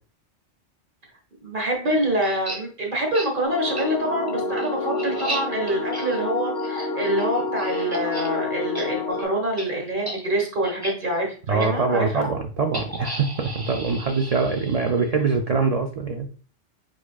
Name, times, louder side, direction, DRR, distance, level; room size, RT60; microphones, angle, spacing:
voice 1, 1.4-12.2, right 1 dB, 45° right, 1 dB, 1.6 m, -26 dB
sound 1, 2.2-2.6 3.1-3.3 3.8-3.9 4.3-8.3 8.6-8.9 9.1-9.3 9.6-9.7 10.0-10.2 10.6-10.9 11.6-11.7 12.7-15.1, right 1 dB, 20° right, 1.1 m, -34 dB
sound 2, 3.4-9.2, left 3 dB, 65° left, 0.9 m, -29 dB
voice 2, 11.5-16.3, right 4 dB, 80° right, 4 dB, 0.3 m, -23 dB
4.9 x 4.3 x 2.3 m, 0.40 s
omnidirectional pair, 1.3 m